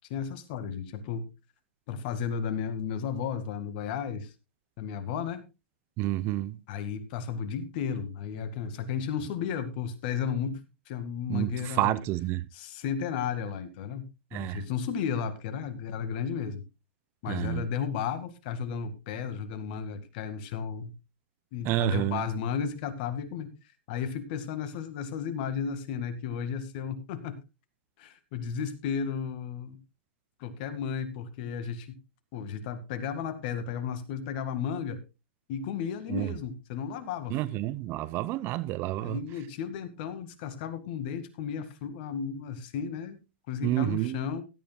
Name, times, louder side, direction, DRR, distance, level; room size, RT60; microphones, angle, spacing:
voice 1, 0.1-1.3 1.9-4.3 4.8-5.4 6.7-12.0 12.5-14.0 14.3-16.6 17.2-20.9 21.5-23.5 23.9-27.4 28.0-29.8 30.4-32.0 32.3-35.0 35.5-37.6 39.0-43.2 43.5-44.4, left 7 dB, 50° left, 2.1 m, -34 dB
voice 2, 6.0-6.6 11.3-12.4 14.3-14.6 17.3-17.6 21.7-22.2 36.1-36.3 37.3-39.2 43.6-44.2, right 16 dB, 35° right, 0.6 m, -29 dB
16.5 x 12.0 x 2.3 m
hypercardioid pair, 110°, 7 cm